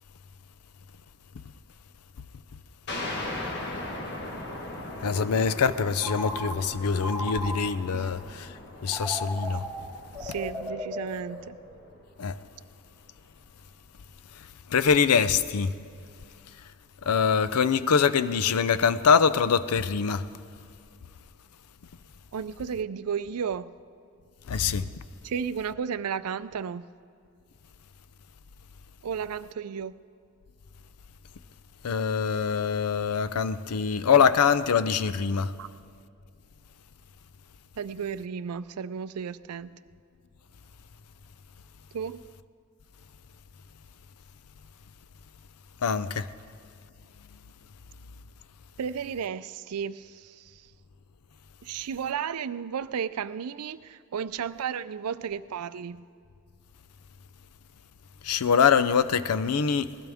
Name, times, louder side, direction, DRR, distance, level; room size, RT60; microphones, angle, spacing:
sound 1, 2.9-12.1, left 1 dB, 50° left, 1.4 m, -39 dB
voice 1, 5.0-8.5 8.8-9.6 12.2-12.4 14.7-15.7 17.1-20.3 24.5-24.9 31.8-35.5 45.8-46.3 58.2-60.0, left 6 dB, 85° left, 0.5 m, -24 dB
Telephone, 6.0-8.0 8.8-11.9, left 1 dB, ahead, 1.7 m, -37 dB
voice 2, 10.2-11.6 22.3-23.7 25.2-26.9 29.0-29.9 35.6-35.7 37.8-39.8 41.9-42.2 48.8-50.7 51.6-56.1, right 7 dB, 85° right, 0.4 m, -33 dB
20.5 x 16.0 x 3.5 m
head